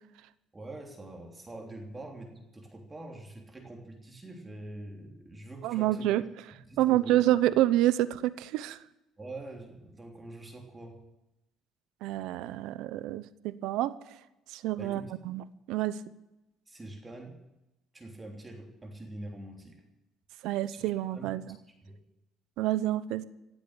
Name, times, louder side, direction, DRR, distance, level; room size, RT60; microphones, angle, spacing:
voice 1, 0.5-6.1 6.7-7.2 9.2-11.0 14.8-15.1 16.7-17.4 17.9-19.8 20.7-20.8 21.1-21.3 21.8-22.0, right 2 dB, 20° right, 2 dB, 3.2 m, -44 dB
voice 2, 5.6-6.2 6.8-8.8 12.0-13.9 14.5-16.0 20.4-21.6 22.6-23.2, right 14 dB, 85° right, 16 dB, 0.9 m, -28 dB
17.5 x 8.2 x 10.0 m, 0.92 s
cardioid pair, 115°, 0 cm